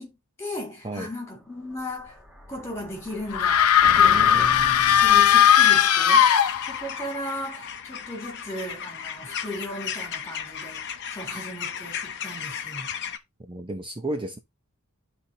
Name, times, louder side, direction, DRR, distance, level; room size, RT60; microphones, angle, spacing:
voice 1, 0.0-2.2 2.5-4.6 4.9-6.3 6.7-10.8 11.1-12.9, left 1 dB, 15° left, 3.4 m, -36 dB
Explosion, 1.4-6.0, equal, 5° right, 1.1 m, -43 dB
sound 1, 3.3-7.0, left 9 dB, 90° left, 0.6 m, -17 dB
voice 2, 3.9-5.0 13.4-14.4, right 1 dB, 25° right, 0.7 m, -34 dB
sound 2, 6.2-13.2, left 8 dB, 55° left, 0.7 m, -35 dB
12.0 x 4.2 x 2.8 m
head